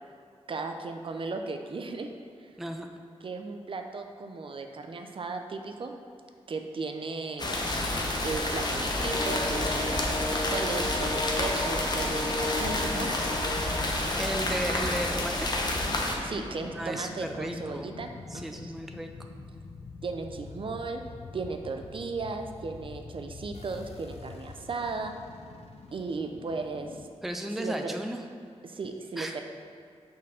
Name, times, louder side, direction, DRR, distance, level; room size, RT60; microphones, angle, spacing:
voice 1, 0.5-2.1 3.2-6.0 6.5-7.6 8.2-13.1 16.2-18.7 20.0-21.0 21.3-25.1 25.9-27.0 27.6-28.0 28.6-29.4, right 3 dB, 50° right, 5 dB, 0.5 m, -36 dB
voice 2, 2.6-3.0 14.2-15.6 16.7-18.0 18.3-19.1 27.2-28.2 29.2-29.4, right 1 dB, ahead, 4 dB, 0.4 m, -34 dB
sound 1, 7.4-16.2, left 1 dB, 40° left, 0.9 m, -29 dB
sound 2, 9.0-27.1, left 2 dB, 70° left, 0.6 m, -39 dB
5.4 x 4.5 x 6.3 m, 2.5 s
wide cardioid pair, 140°, 11 cm